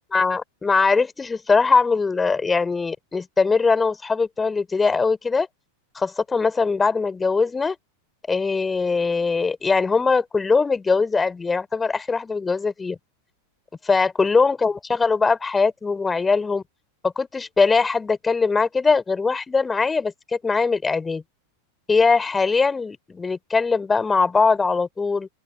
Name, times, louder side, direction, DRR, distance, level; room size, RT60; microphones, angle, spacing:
voice 1, 0.1-5.5 5.9-7.7 8.3-13.0 13.8-16.6 17.0-21.2 21.9-25.3, left 4 dB, 15° left, 3.4 m, -21 dB
open air
figure-of-eight pair, 90°, 0 cm